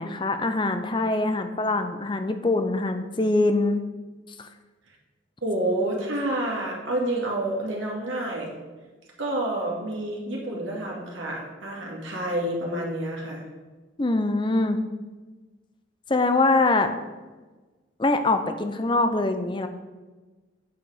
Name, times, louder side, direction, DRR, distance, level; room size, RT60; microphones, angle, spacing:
voice 1, 0.0-3.8 4.4-4.5 14.0-14.8 16.1-16.9 18.0-19.7, left 2 dB, 25° left, 8 dB, 0.5 m, -23 dB
voice 2, 5.4-8.6 9.2-13.5, right 1 dB, 85° right, -2 dB, 2.0 m, -28 dB
8.0 x 5.0 x 4.9 m, 1.3 s
head